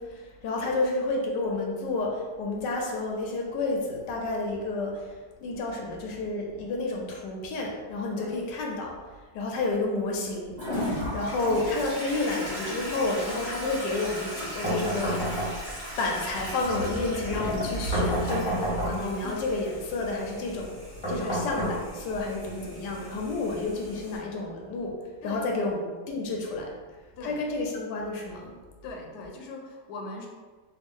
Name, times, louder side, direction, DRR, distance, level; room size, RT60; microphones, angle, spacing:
voice 1, 0.0-5.1 5.4-8.9 9.3-10.6 11.1-15.5 16.0-20.7 21.1-25.0 25.2-26.7 27.2-28.6, left 2 dB, 90° left, 0 dB, 1.3 m, -30 dB
Toilet flush, 10.6-24.2, equal, 25° right, 1.2 m, -36 dB
sound 1, 14.6-15.9 17.9-19.2 21.0-22.2, right 1 dB, 25° left, 0.7 m, -29 dB
voice 2, 25.2-25.8 27.2-27.4 28.8-30.3, left 2 dB, 70° left, 1 dB, 1.0 m, -40 dB
3.4 x 2.3 x 3.6 m, 1.4 s
omnidirectional pair, 1.8 m